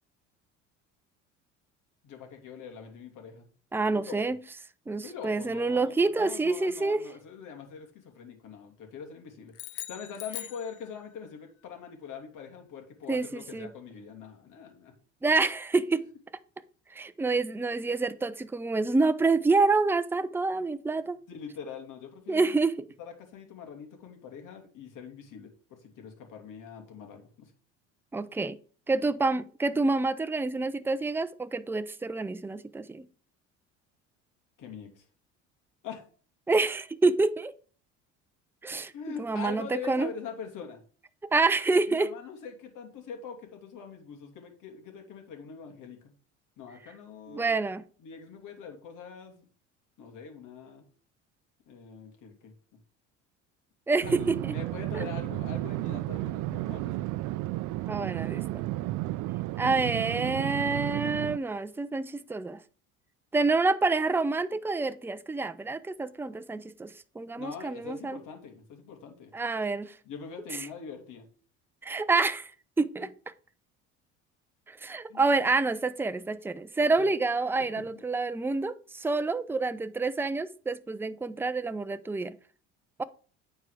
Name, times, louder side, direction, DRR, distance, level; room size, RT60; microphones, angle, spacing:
voice 1, 2.0-3.5 3.9-4.2 4.9-14.9 21.3-22.6 23.0-27.5 34.6-35.0 35.8-36.0 38.9-40.8 41.9-46.1 46.6-47.6 48.0-49.5 50.0-50.8 51.7-52.5 54.1-57.1 58.1-58.2 67.4-69.3 70.0-71.3 73.0-73.1 75.1-75.2 76.8-77.1 77.6-77.7, left 6 dB, 55° left, 2.8 m, -43 dB
voice 2, 3.7-4.4 4.9-7.0 13.1-13.3 13.5-13.7 15.2-16.0 16.9-21.2 22.3-22.7 28.1-28.6 28.9-33.0 36.5-37.5 38.6-38.9 39.2-40.1 41.2-42.1 47.3-47.8 53.9-54.5 54.9-55.0 57.9-58.6 59.6-62.6 63.3-68.2 69.3-69.9 71.8-72.5 72.8-73.1 74.7-82.3 83.0-83.1, right 3 dB, 5° right, 0.6 m, -27 dB
sound 1, 9.5-11.3, left 14 dB, 75° left, 0.8 m, -42 dB
sound 2, 54.0-61.4, right 18 dB, 55° right, 0.5 m, -33 dB
9.3 x 4.7 x 4.9 m
hypercardioid pair, 70°, 36 cm